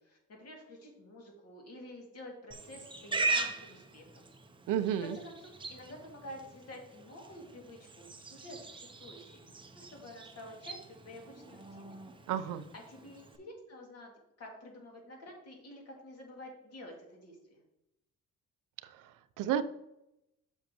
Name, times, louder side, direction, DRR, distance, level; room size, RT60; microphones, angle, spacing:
voice 1, 0.0-4.3 5.0-9.4 9.8-10.8 11.0-11.9 12.7-14.1 14.4-17.6, left 1 dB, 50° left, 0 dB, 2.3 m, -49 dB
Livestock farm animals working animals, 2.5-13.4, right 3 dB, 15° right, 0.7 m, -40 dB
voice 2, 4.7-5.2 12.3-12.6 18.9-19.6, right 10 dB, 85° right, 11 dB, 0.6 m, -32 dB
7.3 x 6.4 x 3.0 m, 0.87 s
cardioid pair, 135°, 31 cm